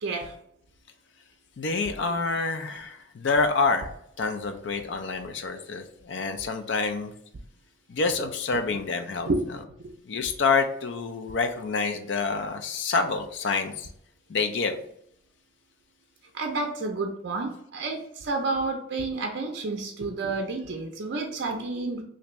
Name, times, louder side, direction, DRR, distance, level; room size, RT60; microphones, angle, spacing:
voice 1, 0.0-0.3 9.3-9.4 16.3-22.0, right 3 dB, 60° right, 2 dB, 0.4 m, -30 dB
voice 2, 1.6-3.9 4.2-7.1 7.9-9.3 10.1-13.9 14.3-14.8, left 4 dB, 60° left, 7 dB, 0.4 m, -27 dB
3.3 x 2.6 x 3.0 m, 0.73 s
head